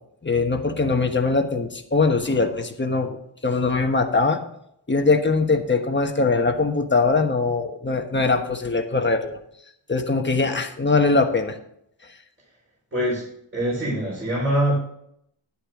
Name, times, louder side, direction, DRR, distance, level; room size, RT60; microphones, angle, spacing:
voice 1, 0.2-3.2 3.4-4.4 4.9-9.4 9.9-11.5, left 3 dB, 20° left, 4 dB, 1.3 m, -21 dB
voice 2, 12.9-13.2 13.5-14.8, right 1 dB, 25° right, -7 dB, 4.8 m, -23 dB
11.0 x 10.0 x 3.7 m, 0.72 s
wide cardioid pair, 125°, 49 cm